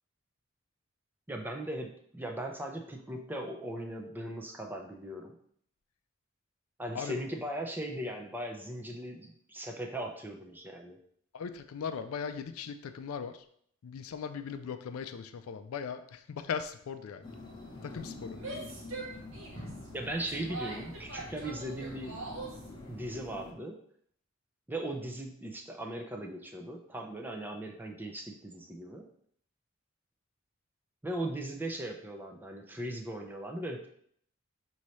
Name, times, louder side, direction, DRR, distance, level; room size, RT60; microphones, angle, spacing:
voice 1, 1.3-5.4 6.8-11.0 19.9-22.2 22.9-23.8 24.7-29.1 31.0-33.9, right 1 dB, 10° right, 2 dB, 0.4 m, -38 dB
voice 2, 11.3-13.4 13.8-17.3 17.8-18.4, left 6 dB, 80° left, 9 dB, 0.4 m, -38 dB
sound 1, 17.2-23.5, left 2 dB, 20° left, 0.9 m, -46 dB
Female speech woman speaking / Yell, 18.3-22.7, right 3 dB, 65° right, 1.0 m, -43 dB
5.3 x 2.8 x 3.1 m, 0.65 s
head